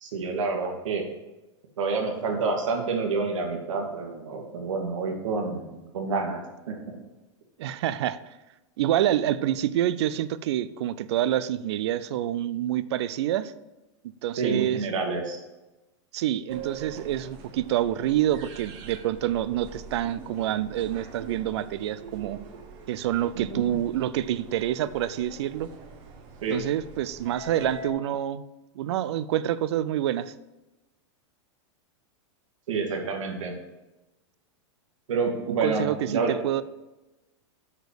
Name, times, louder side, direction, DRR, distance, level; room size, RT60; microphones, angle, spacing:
voice 1, 0.0-1.0 1.8-7.0 14.4-15.4 23.4-23.7 26.4-26.6 32.7-33.5 35.1-36.4, right 4 dB, 85° right, 2 dB, 2.0 m, -28 dB
voice 2, 7.6-8.2 8.8-13.5 14.2-14.8 16.1-22.4 22.9-25.7 26.5-28.4 28.8-30.3 35.5-36.6, right 12 dB, 60° right, 15 dB, 0.5 m, -27 dB
sound 1, 16.5-27.9, right 3 dB, 30° right, 1.0 m, -44 dB
6.5 x 5.1 x 6.6 m, 1.0 s
supercardioid pair, 165°, 16 cm